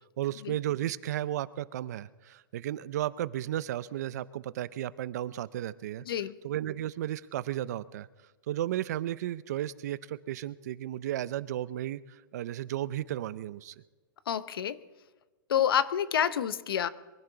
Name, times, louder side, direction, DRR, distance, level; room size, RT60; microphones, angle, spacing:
voice 1, 0.2-6.0 6.4-8.1 8.5-13.7, right 12 dB, 50° right, 18 dB, 0.5 m, -34 dB
voice 2, 6.1-6.4 14.3-14.8 15.5-16.9, left 9 dB, 85° left, 16 dB, 0.8 m, -28 dB
23.0 x 15.0 x 3.9 m, 1.2 s
hypercardioid pair, 170°, 12 cm